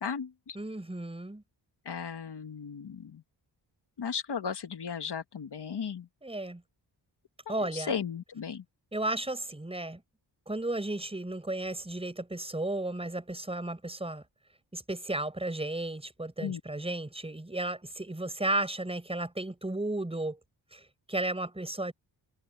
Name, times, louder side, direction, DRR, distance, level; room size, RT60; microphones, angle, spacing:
voice 1, 0.0-0.6 1.8-3.2 4.0-6.1 7.5-8.6 16.4-16.6, left 6 dB, 60° left, 1.7 m, -36 dB
voice 2, 0.5-1.4 6.2-6.6 7.5-7.9 8.9-10.0 10.5-14.2 14.7-20.4 20.7-21.9, right 2 dB, 15° right, 5.6 m, -34 dB
wide cardioid pair, 160°, 45 cm